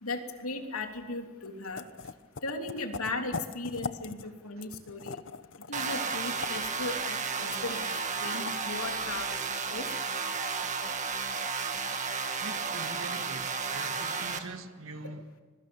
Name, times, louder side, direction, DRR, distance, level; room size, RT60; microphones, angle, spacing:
voice 1, 0.0-1.8 2.4-5.1 5.7-7.9 8.2-9.4 9.7-9.9, left 2 dB, 85° left, 3.2 m, -37 dB
sound 1, 1.4-1.5 1.8-4.3 4.6-8.7, left 4 dB, 55° left, 0.9 m, -40 dB
sound 2, 5.7-14.4, right 5 dB, 35° right, 1.8 m, -33 dB
voice 2, 12.4-15.4, right 3 dB, 70° right, 1.8 m, -43 dB
25.0 x 22.0 x 7.2 m
head